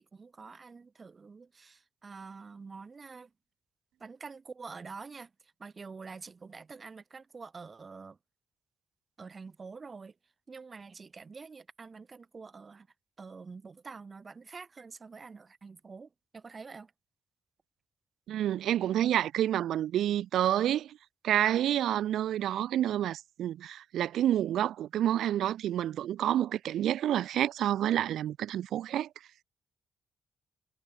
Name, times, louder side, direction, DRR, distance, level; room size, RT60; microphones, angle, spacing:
voice 1, 0.0-3.3 4.0-8.2 9.2-10.2 10.5-12.9 13.2-16.9, right 4 dB, 30° right, 2.1 m, -47 dB
voice 2, 18.3-21.0 21.2-29.1, right 11 dB, 85° right, 0.4 m, -28 dB
cardioid pair, 145°, 0 cm